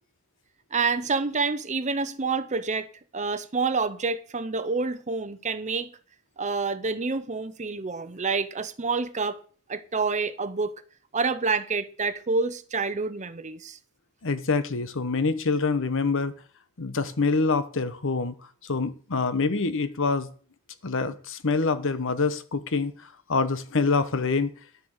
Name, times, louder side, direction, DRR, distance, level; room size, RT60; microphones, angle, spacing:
voice 1, 0.7-5.9 6.4-9.4 9.7-10.8 11.1-13.8, right 4 dB, 35° right, 0.8 m, -28 dB
voice 2, 14.2-16.3 16.8-18.3 18.6-20.3 20.8-22.9 23.3-24.5, left 4 dB, 60° left, 1.1 m, -25 dB
11.0 x 7.0 x 6.5 m
head